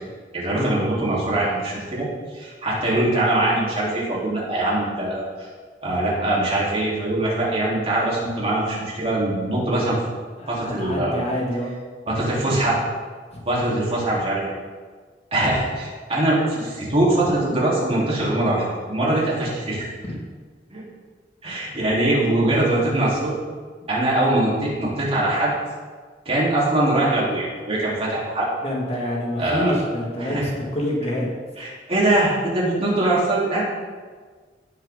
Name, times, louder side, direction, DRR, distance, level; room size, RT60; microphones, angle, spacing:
voice 1, 0.3-2.1 2.3-5.5 5.8-10.0 10.5-11.2 12.1-12.8 13.5-14.4 15.3-19.9 20.7-20.8 21.4-23.3 23.9-25.5 26.3-28.5 29.4-29.7 30.2-30.5 31.6-33.6, right 1 dB, 35° right, -6 dB, 3.6 m, -22 dB
voice 2, 10.4-11.8 13.3-13.4 20.0-20.2 28.6-31.3, left 1 dB, 35° left, -3 dB, 2.0 m, -27 dB
17.0 x 7.4 x 3.8 m, 1.5 s
head